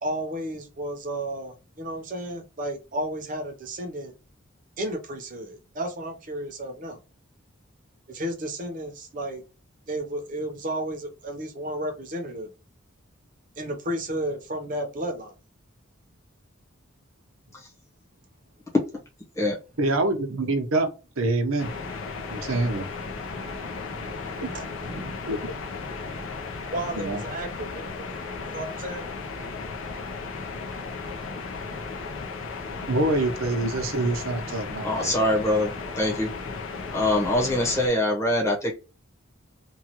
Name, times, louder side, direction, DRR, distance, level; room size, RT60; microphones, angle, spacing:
voice 1, 0.0-4.1 4.8-7.0 8.1-9.4 9.9-12.5 13.6-15.3 22.2-22.8 23.3-25.1 26.0-26.2 26.6-28.2 28.5-29.1, right 1 dB, 40° right, 0.7 m, -33 dB
voice 2, 19.8-20.9 21.2-21.7 22.3-22.8 24.4-24.5 25.2-25.4 27.0-27.2 32.9-35.1, right 2 dB, 75° right, 0.8 m, -25 dB
sound 1, 21.6-37.9, left 4 dB, 65° left, 0.6 m, -35 dB
voice 3, 34.8-36.3 36.9-38.7, left 1 dB, 15° left, 0.9 m, -24 dB
3.0 x 2.3 x 2.9 m
head